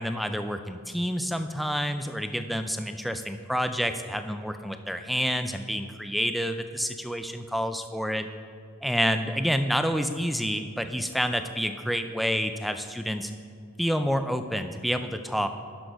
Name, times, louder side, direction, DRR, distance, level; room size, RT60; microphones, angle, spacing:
voice 1, 0.0-8.3 8.8-13.3 13.8-15.5, equal, ahead, 8 dB, 0.3 m, -28 dB
11.5 x 6.0 x 4.7 m, 2.3 s
head